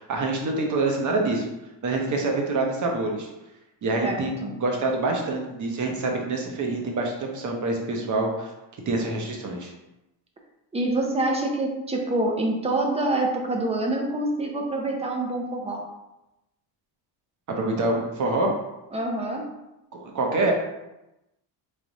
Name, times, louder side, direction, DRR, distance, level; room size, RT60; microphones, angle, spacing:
voice 1, 0.0-1.5 1.8-3.3 3.8-8.5 8.9-9.7 17.5-18.5 19.9-20.5, right 2 dB, 40° right, 1 dB, 0.8 m, -26 dB
voice 2, 4.0-4.5 10.7-15.8 18.9-19.5, right 2 dB, 15° right, 1 dB, 0.5 m, -26 dB
3.3 x 2.4 x 4.0 m, 0.94 s
cardioid pair, 130°, 49 cm